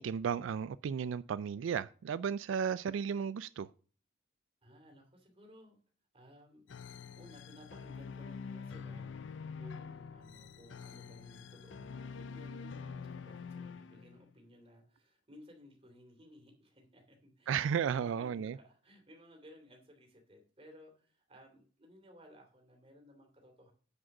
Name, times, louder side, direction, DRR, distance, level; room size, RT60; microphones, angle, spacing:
voice 1, 0.0-3.7 17.5-18.6, right 7 dB, 80° right, 0.3 m, -34 dB
voice 2, 4.6-5.8 6.1-6.7 7.1-23.7, equal, 30° right, 3.0 m, -58 dB
sound 1, 6.7-14.4, left 5 dB, 70° left, 0.5 m, -46 dB
9.7 x 5.1 x 6.0 m
head